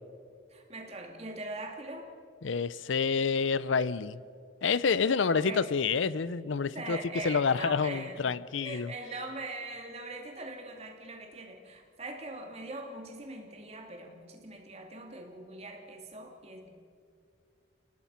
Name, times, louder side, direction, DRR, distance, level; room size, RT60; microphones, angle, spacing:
voice 1, 0.5-2.1 5.1-5.7 6.7-8.2 8.6-16.7, right 2 dB, 30° right, 2 dB, 2.6 m, -41 dB
voice 2, 2.4-4.2 4.6-7.0 7.2-8.9, left 5 dB, 75° left, 18 dB, 0.5 m, -28 dB
30.0 x 18.5 x 5.7 m, 2.4 s
head